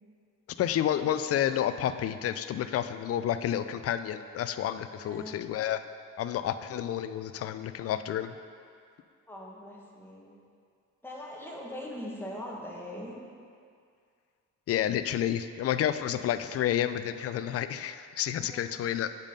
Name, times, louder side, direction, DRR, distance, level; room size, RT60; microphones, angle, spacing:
voice 1, 0.6-5.8 6.2-8.4 14.7-19.1, left 10 dB, 50° left, 11 dB, 0.4 m, -30 dB
voice 2, 4.9-5.5 9.3-10.4 11.0-13.2 18.4-19.1, left 1 dB, 5° left, -3 dB, 1.5 m, -42 dB
7.2 x 5.3 x 5.4 m, 2.3 s
cardioid pair, 90°, 30 cm